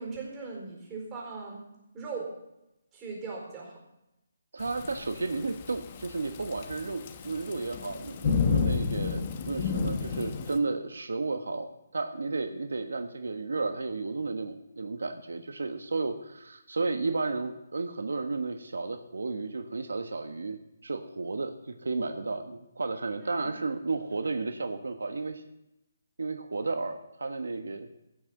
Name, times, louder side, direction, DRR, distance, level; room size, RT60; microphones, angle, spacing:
voice 1, 0.0-1.6 1.9-2.3 2.9-3.8 23.2-23.5, right 4 dB, 15° right, -3 dB, 4.4 m, -39 dB
voice 2, 4.5-25.4 26.2-27.9, right 3 dB, 85° right, 7 dB, 1.2 m, -33 dB
Thunderstorm / Rain, 4.6-10.6, left 5 dB, 30° left, 1.0 m, -31 dB
15.5 x 6.3 x 7.6 m, 0.89 s
hypercardioid pair, 160°, 0 cm